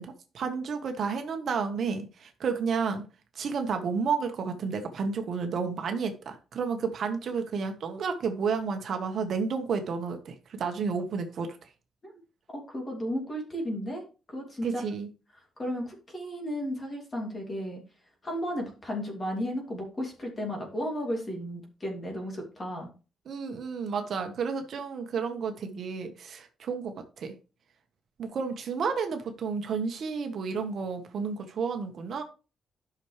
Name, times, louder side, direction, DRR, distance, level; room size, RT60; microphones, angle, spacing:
voice 1, 0.0-3.0 3.3-11.6 14.6-15.1 23.3-27.3 28.2-32.2, right 5 dB, 55° right, 1.3 m, -31 dB
voice 2, 12.5-14.0 14.3-14.8 15.6-17.8 18.2-22.9, equal, 25° left, 2.7 m, -34 dB
12.0 x 6.0 x 3.3 m
cardioid pair, 155°, 0 cm